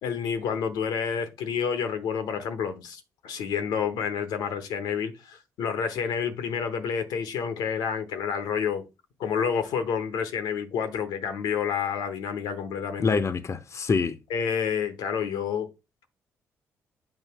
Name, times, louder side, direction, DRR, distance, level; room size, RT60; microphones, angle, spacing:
voice 1, 0.0-8.9 9.2-13.1 14.3-15.7, left 7 dB, 75° left, 1.0 m, -29 dB
voice 2, 13.0-14.2, left 5 dB, 45° left, 0.7 m, -25 dB
7.3 x 2.7 x 5.8 m
hypercardioid pair, 45°, 7 cm